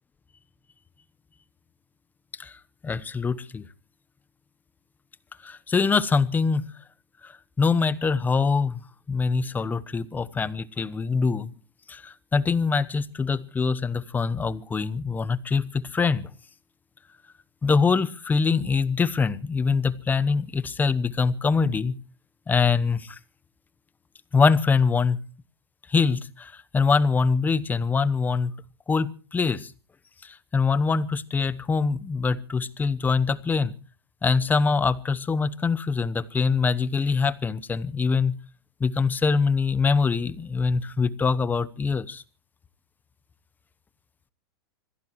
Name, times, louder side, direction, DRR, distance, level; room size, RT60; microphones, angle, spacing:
voice 1, 2.4-3.6 5.4-6.6 7.2-7.3 7.6-8.8 9.1-11.5 11.9-16.3 17.6-22.0 22.5-23.2 24.3-25.2 25.9-28.5 28.9-29.7 30.2-33.7 34.2-38.4 38.8-42.2, left 5 dB, 15° left, 0.9 m, -24 dB
25.5 x 17.0 x 3.1 m
hypercardioid pair, 125°, 13 cm